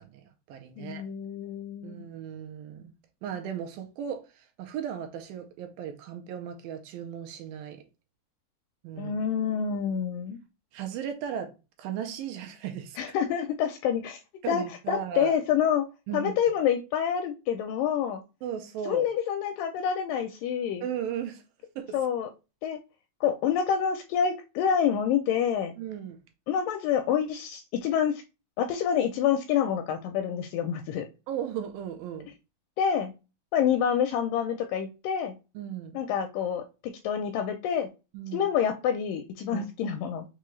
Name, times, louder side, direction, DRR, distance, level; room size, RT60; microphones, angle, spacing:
voice 1, 0.0-1.0 1.8-2.9 3.2-7.8 8.8-9.2 10.7-11.5 11.8-13.0 14.4-15.3 16.1-16.3 18.4-19.1 20.8-21.4 21.8-22.0 25.8-26.2 31.3-32.3 35.6-36.0 38.1-38.4 39.5-39.6, right 9 dB, 80° right, 2.3 m, -36 dB
voice 2, 0.8-2.0 9.0-10.4 13.0-14.2 14.5-15.9 16.1-18.2 18.8-20.9 21.9-22.3 22.6-22.8 23.2-25.7 26.5-28.2 28.6-31.1 32.8-33.1 33.5-35.4 35.9-37.9 38.3-40.3, left 8 dB, 80° left, 1.9 m, -27 dB
6.1 x 2.3 x 3.1 m
omnidirectional pair, 4.2 m